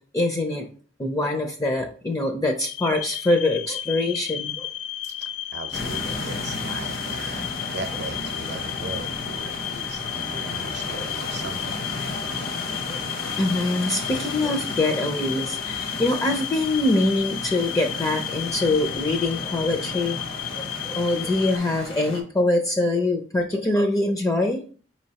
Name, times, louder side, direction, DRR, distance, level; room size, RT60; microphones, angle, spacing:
voice 1, 0.1-0.7 1.0-4.7 7.4-7.5 10.9-11.0 12.9-13.0 13.4-20.2 20.5-24.6, left 2 dB, 20° left, 3 dB, 0.4 m, -24 dB
sound 1, 2.6-21.6, left 12 dB, 75° left, 0.4 m, -33 dB
voice 2, 5.0-11.8, right 3 dB, 65° right, 7 dB, 0.6 m, -38 dB
sound 2, 5.7-22.2, left 2 dB, 60° left, 0.9 m, -34 dB
4.9 x 3.1 x 2.8 m, 0.41 s
head